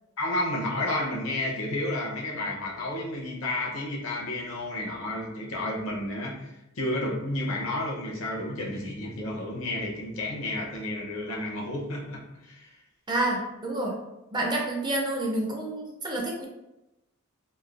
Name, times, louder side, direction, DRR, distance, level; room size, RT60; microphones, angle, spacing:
voice 1, 0.2-12.8, left 1 dB, 65° left, -1 dB, 0.6 m, -31 dB
voice 2, 13.1-14.0 14.3-16.5, right 1 dB, 20° right, -1 dB, 0.4 m, -28 dB
3.1 x 2.0 x 2.3 m, 0.93 s
head